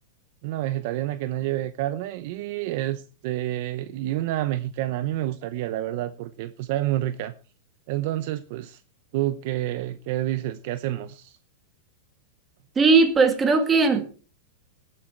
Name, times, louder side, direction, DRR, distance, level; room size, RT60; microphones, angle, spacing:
voice 1, 0.4-7.4 7.9-8.8 9.1-11.3, right 14 dB, 50° right, 0.8 m, -28 dB
voice 2, 12.8-14.2, right 4 dB, 15° right, 2.1 m, -19 dB
18.5 x 8.9 x 4.5 m
supercardioid pair, 160°, 0 cm